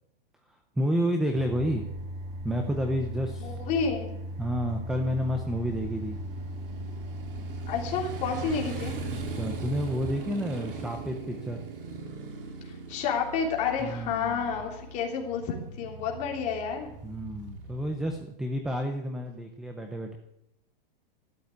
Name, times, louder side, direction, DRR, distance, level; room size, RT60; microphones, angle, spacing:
voice 1, 0.8-1.9 2.4-3.5 4.4-6.2 9.1-11.6 13.8-14.5 17.0-20.1, equal, ahead, 5 dB, 0.6 m, -30 dB
sound 1, 1.3-12.0, equal, 20° right, 1.8 m, -38 dB
Motorcycle, 2.5-18.2, right 5 dB, 65° right, 5.1 m, -42 dB
voice 2, 3.4-4.1 7.7-9.0 12.6-16.9, left 6 dB, 25° left, 0 dB, 3.2 m, -30 dB
13.5 x 11.5 x 9.4 m, 0.83 s
supercardioid pair, 170°, 29 cm